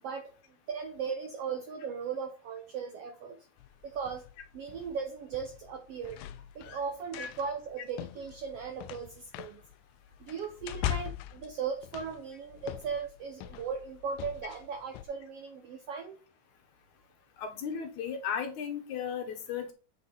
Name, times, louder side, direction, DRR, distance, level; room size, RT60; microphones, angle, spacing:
voice 1, 0.7-3.4 3.8-4.2 4.5-6.2 6.5-9.6 10.2-16.2, right 6 dB, 75° right, 6 dB, 1.4 m, -37 dB
sound 1, 3.6-15.0, left 13 dB, 90° left, 2.2 m, -42 dB
voice 2, 17.4-19.7, left 7 dB, 70° left, 5 dB, 2.5 m, -35 dB
8.4 x 5.3 x 4.1 m, 0.35 s
omnidirectional pair, 3.7 m